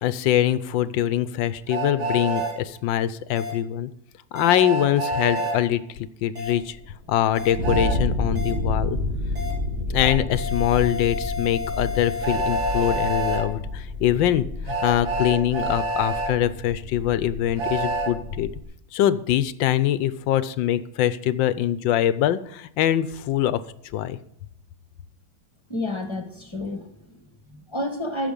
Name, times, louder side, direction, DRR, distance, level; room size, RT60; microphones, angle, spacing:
voice 1, 0.0-3.9 4.3-5.8 6.2-6.8 7.1-9.0 9.9-18.5 18.9-23.6 23.9-24.2, left 11 dB, 75° left, 15 dB, 1.4 m, -23 dB
Train, 1.7-2.5 4.5-5.6 7.6-8.0 10.0-10.2 12.2-13.4 14.7-16.3 17.6-18.1, right 2 dB, 75° right, 2.3 m, -27 dB
sound 1, 2.4-2.5 3.4-3.5 4.4-4.5 5.4-5.5 6.4-6.5 7.4-7.5 8.4-8.5 9.4-9.5 10.4-13.4, left 5 dB, 55° right, 4.1 m, -32 dB
sound 2, 6.6-18.6, left 2 dB, 30° right, 3.2 m, -30 dB
voice 2, 25.7-28.3, left 1 dB, 15° left, 5 dB, 1.4 m, -31 dB
14.5 x 6.9 x 5.3 m, 0.73 s
omnidirectional pair, 2.1 m